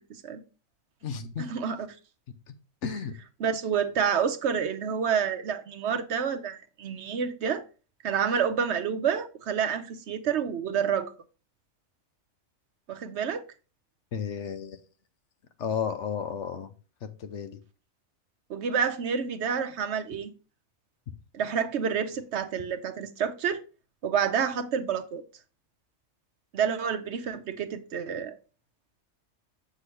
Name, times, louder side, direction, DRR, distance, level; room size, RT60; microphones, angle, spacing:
voice 1, 0.1-0.4 1.4-2.0 3.4-7.6 8.0-11.1 12.9-13.4 18.5-20.3 21.3-23.6 24.0-25.2 26.5-28.4, right 7 dB, 65° right, 0.9 m, -28 dB
voice 2, 1.0-1.5 2.8-3.1 14.1-14.8 15.6-16.7 17.2-17.6, left 7 dB, 65° left, 1.1 m, -32 dB
7.6 x 6.1 x 3.2 m
omnidirectional pair, 1.4 m